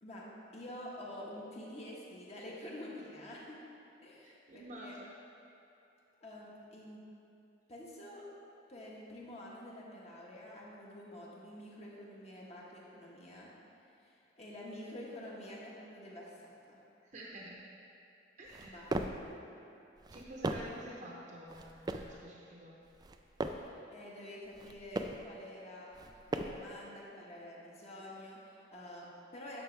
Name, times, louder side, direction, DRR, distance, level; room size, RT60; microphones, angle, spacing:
voice 1, 0.5-3.6 4.0-5.0 6.2-7.0 7.7-8.2 8.7-13.5 14.0-16.8 18.6-19.5 23.5-26.0 26.3-29.6, left 1 dB, 35° left, -4 dB, 1.4 m, -48 dB
voice 2, 4.2-5.1 17.0-17.6 18.4-18.8 20.1-22.8 26.0-26.1, right 1 dB, 45° right, -3 dB, 0.8 m, -49 dB
sound 1, 18.5-19.3 20.0-20.8 21.5-22.2 22.9-23.7 24.5-25.3 25.9-26.7, right 2 dB, 20° right, 0.3 m, -39 dB
11.0 x 5.9 x 3.3 m, 2.8 s
head